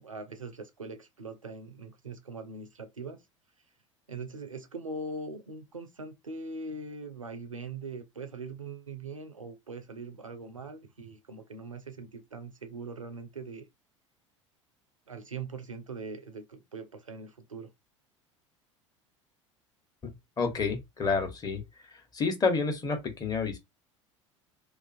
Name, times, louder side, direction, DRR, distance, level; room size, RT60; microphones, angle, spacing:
voice 1, 0.0-3.2 4.1-13.7 15.1-17.7, right 3 dB, 85° right, 0.4 m, -41 dB
voice 2, 20.0-21.6 21.9-23.6, left 4 dB, 25° left, 0.8 m, -30 dB
2.4 x 2.3 x 2.5 m
figure-of-eight pair, 70°, 17 cm